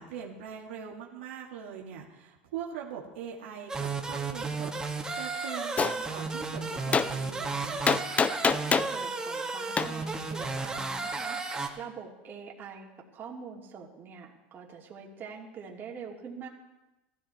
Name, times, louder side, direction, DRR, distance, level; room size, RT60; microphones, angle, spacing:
voice 1, 0.0-7.8, right 8 dB, 85° right, -2 dB, 2.3 m, -42 dB
sound 1, 3.7-11.7, right 4 dB, 10° right, 2.1 m, -33 dB
Gunshot gunfire, 5.8-6.0 6.9-7.1 7.9-8.9 9.8-9.9, left 5 dB, 25° left, 0.6 m, -24 dB
voice 2, 8.7-16.5, right 6 dB, 35° right, -2 dB, 2.9 m, -44 dB
15.0 x 14.5 x 4.5 m, 1.0 s
supercardioid pair, 105°, 6 cm